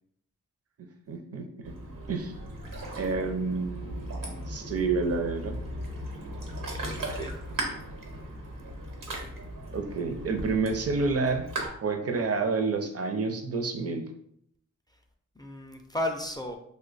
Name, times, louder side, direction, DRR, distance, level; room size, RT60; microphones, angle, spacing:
voice 1, 0.8-1.7 2.1-2.3 2.9-5.6 9.7-11.5 11.8-14.1, right 4 dB, 50° right, 4 dB, 0.5 m, -29 dB
Ocean, 1.6-11.7, right 1 dB, 85° right, 1.0 m, -37 dB
voice 2, 6.6-7.4 15.4-16.6, left 1 dB, 15° left, 3 dB, 0.3 m, -34 dB
2.9 x 2.2 x 3.9 m, 0.71 s
wide cardioid pair, 75°, 31 cm